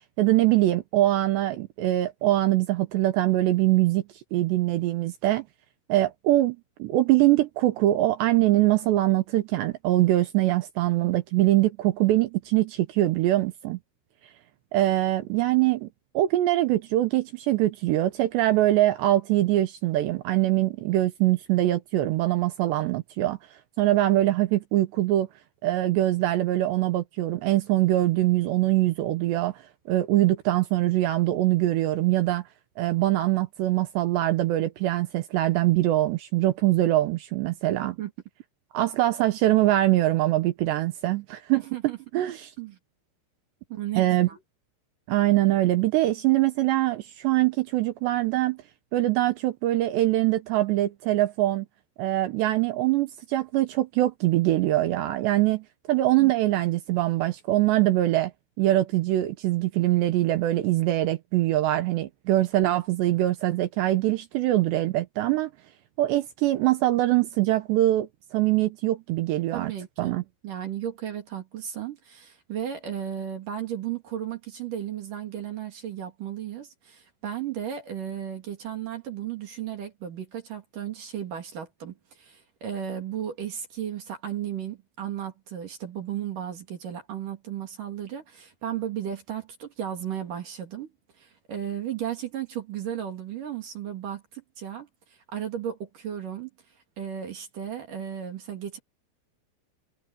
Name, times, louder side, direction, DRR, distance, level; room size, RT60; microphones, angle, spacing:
voice 1, 0.2-4.0 4.3-5.5 5.9-13.8 14.7-15.9 16.1-23.4 23.8-25.3 25.6-29.6 29.9-32.4 32.8-38.0 38.7-41.6 42.1-42.5 44.0-44.3 45.1-48.6 48.9-51.7 52.0-58.3 58.6-65.5 66.0-69.7 70.0-70.2, right 15 dB, 75° right, 2.7 m, -23 dB
voice 2, 41.5-42.0 42.6-42.8 43.7-44.4 56.2-56.3 69.5-70.2 70.4-90.9 91.2-94.9 95.3-96.5 97.0-98.8, right 10 dB, 50° right, 3.2 m, -34 dB
omnidirectional pair, 5.9 m